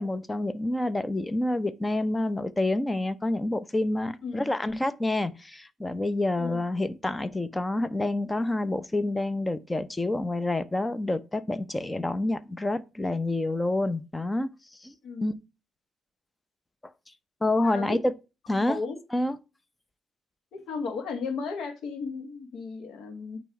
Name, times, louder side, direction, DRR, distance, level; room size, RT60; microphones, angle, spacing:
voice 1, 0.0-14.5 14.8-14.9 15.2-15.3 17.4-18.0 18.5-18.8 19.1-19.4, left 2 dB, 15° left, 0.7 m, -28 dB
voice 2, 15.0-15.4 17.6-18.0 18.6-19.0 20.5-23.4, left 4 dB, 75° left, 1.6 m, -35 dB
8.9 x 3.1 x 4.8 m
cardioid pair, 90°, 0 cm